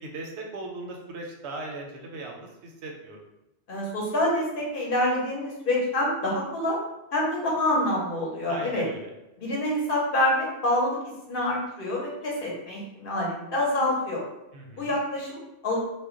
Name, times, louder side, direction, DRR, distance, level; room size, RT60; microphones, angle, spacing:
voice 1, 0.0-3.2 8.5-9.1 14.5-15.0, right 2 dB, 80° right, 1 dB, 0.9 m, -38 dB
voice 2, 3.7-6.8 7.1-8.9 9.4-11.0 11.3-14.2 14.7-15.8, left 1 dB, 55° left, -3 dB, 0.9 m, -26 dB
2.2 x 2.1 x 3.6 m, 0.93 s
omnidirectional pair, 1.1 m